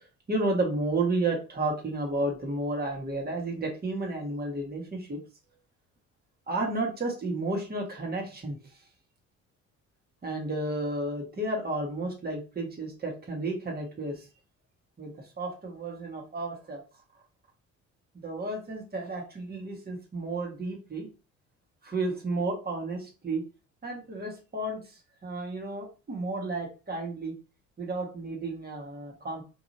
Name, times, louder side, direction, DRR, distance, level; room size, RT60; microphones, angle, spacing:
voice 1, 0.3-5.2 6.5-8.6 10.2-14.2 15.0-16.8 18.1-21.1 21.8-23.5 23.8-24.8 25.2-27.3 27.8-29.4, right 2 dB, 30° right, 0 dB, 1.6 m, -32 dB
4.5 x 3.3 x 2.8 m, 0.33 s
cardioid pair, 90°, 30 cm